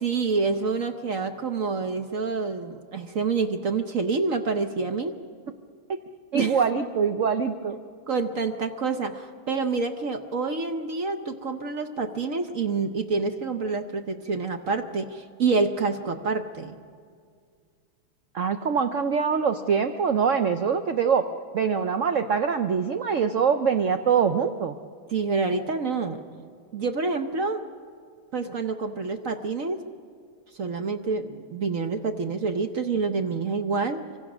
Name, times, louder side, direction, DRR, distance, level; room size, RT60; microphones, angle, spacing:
voice 1, 0.0-5.1 6.3-6.6 8.1-16.8 25.1-26.2 26.7-27.7 28.3-29.8 30.6-34.0, right 4 dB, 50° right, 7 dB, 1.0 m, -27 dB
voice 2, 6.3-7.8 18.3-21.3 21.5-24.7, right 6 dB, 75° right, 8 dB, 0.7 m, -24 dB
25.0 x 25.0 x 6.2 m, 2.1 s
omnidirectional pair, 2.3 m